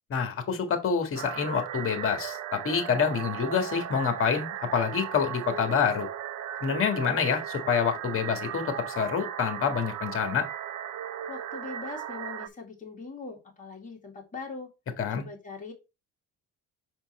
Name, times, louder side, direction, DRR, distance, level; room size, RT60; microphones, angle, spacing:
voice 1, 0.1-6.1 6.6-8.6 9.0-10.4 15.0-15.2, left 6 dB, 45° left, 6 dB, 1.7 m, -27 dB
sound 1, 1.2-12.5, right 10 dB, 65° right, 0.7 m, -37 dB
voice 2, 11.3-14.7 15.1-15.7, left 4 dB, 25° left, 0 dB, 2.3 m, -41 dB
5.8 x 4.4 x 4.3 m, 0.27 s
cardioid pair, 115°, 30 cm